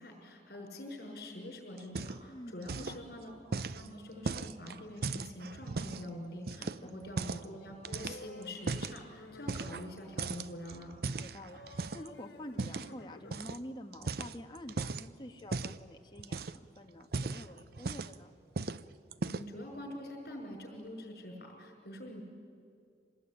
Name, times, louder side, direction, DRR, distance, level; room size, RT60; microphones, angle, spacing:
voice 1, 0.0-10.9 19.2-22.2, left 1 dB, 60° left, 2 dB, 5.9 m, -45 dB
sound 1, 1.8-2.4 2.6-3.0 3.5-6.1 6.5-7.5 7.8-9.0 9.5-9.9 10.2-12.1 12.6-12.9 13.3-13.6 13.9-15.1 15.5-15.8 16.2-16.7 17.0-18.2 18.6-18.8 19.1-19.6, right 3 dB, 60° right, 0.6 m, -37 dB
voice 2, 2.3-3.0 6.6-6.9 11.1-16.5 16.8-18.3, left 1 dB, 25° left, 4 dB, 1.5 m, -48 dB
sound 2, 7.9-9.7 11.5-13.4, left 2 dB, 90° left, 1.6 m, -52 dB
25.5 x 19.5 x 9.9 m, 2.5 s
head